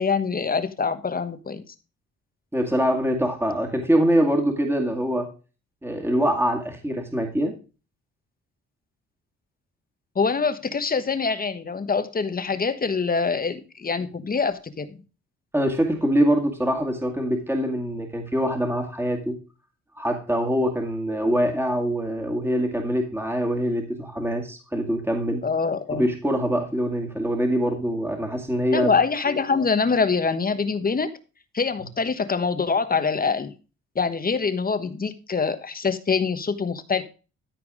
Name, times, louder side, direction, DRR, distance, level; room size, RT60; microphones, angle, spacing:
voice 1, 0.0-1.6 10.1-15.0 25.4-26.0 28.7-31.1 31.5-33.5 33.9-37.0, left 5 dB, 30° left, 11 dB, 1.2 m, -24 dB
voice 2, 2.5-5.3 5.8-7.5 15.5-19.4 20.0-25.4 25.9-28.9, equal, 10° right, 3 dB, 2.2 m, -24 dB
13.5 x 4.6 x 4.9 m, 0.33 s
cardioid pair, 90°, 30 cm